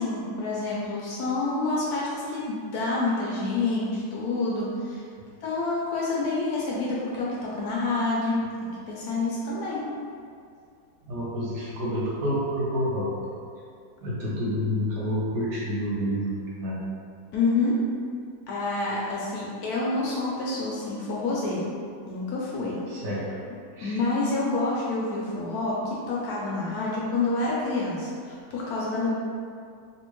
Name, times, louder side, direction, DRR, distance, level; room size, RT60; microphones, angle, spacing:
voice 1, 0.0-5.0 5.4-9.8 17.3-17.8 18.5-21.6 22.1-22.8 23.8-29.1, left 3 dB, 70° left, -6 dB, 1.0 m, -28 dB
voice 2, 11.0-13.4 14.0-16.8 22.9-23.2 23.8-24.0, equal, 70° right, -6 dB, 1.4 m, -29 dB
3.4 x 2.7 x 3.0 m, 2.3 s
omnidirectional pair, 1.9 m